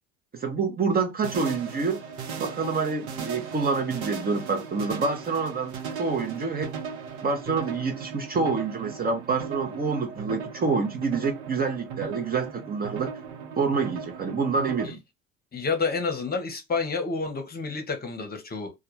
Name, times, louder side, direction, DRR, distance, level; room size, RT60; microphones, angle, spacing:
voice 1, 0.3-2.0 2.4-6.7 7.2-13.1 13.6-15.0, right 4 dB, 25° right, 0.6 m, -27 dB
sound 1, 1.2-14.9, right 6 dB, 75° right, 0.9 m, -37 dB
voice 2, 15.5-18.7, left 4 dB, 30° left, 0.8 m, -29 dB
2.2 x 2.2 x 2.8 m
hypercardioid pair, 75°, 34 cm